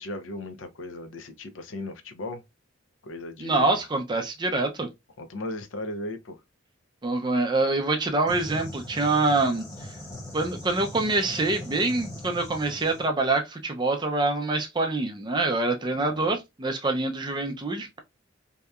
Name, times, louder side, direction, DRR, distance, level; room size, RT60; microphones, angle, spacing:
voice 1, 0.0-2.4 3.0-3.8 5.2-6.4 15.9-16.3, left 2 dB, 75° left, 0.5 m, -37 dB
voice 2, 3.4-4.9 7.0-9.6 10.3-17.9, right 2 dB, 25° right, 0.5 m, -25 dB
sound 1, 8.3-13.1, left 1 dB, 15° left, 0.8 m, -40 dB
2.8 x 2.2 x 2.3 m
head